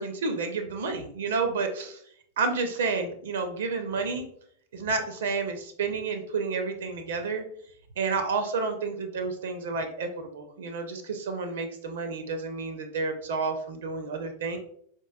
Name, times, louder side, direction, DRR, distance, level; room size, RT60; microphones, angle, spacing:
voice 1, 0.0-2.0 2.4-4.3 4.7-7.5 8.0-14.6, right 4 dB, 60° right, 7 dB, 0.4 m, -30 dB
4.3 x 2.9 x 2.2 m, 0.65 s
figure-of-eight pair, 90°, 0 cm